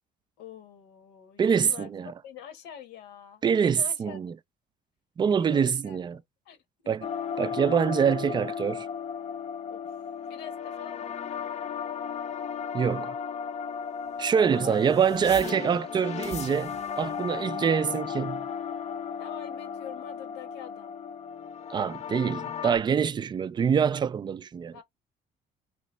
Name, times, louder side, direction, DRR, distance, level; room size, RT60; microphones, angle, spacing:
voice 1, 0.4-4.2 5.3-6.0 6.4-6.6 6.8-6.9 9.7-10.0 10.3-11.6 14.5-15.6 19.2-20.9 24.7-24.8, left 9 dB, 90° left, 1.2 m, -45 dB
voice 2, 1.4-2.1 3.4-4.3 5.2-6.2 6.9-7.1 7.4-8.9 12.7-13.2 14.2-18.5 21.7-24.8, right 7 dB, 25° right, 0.3 m, -25 dB
sound 1, 7.0-22.8, left 7 dB, 40° left, 0.5 m, -35 dB
3.2 x 3.0 x 4.4 m
cardioid pair, 110°, 17 cm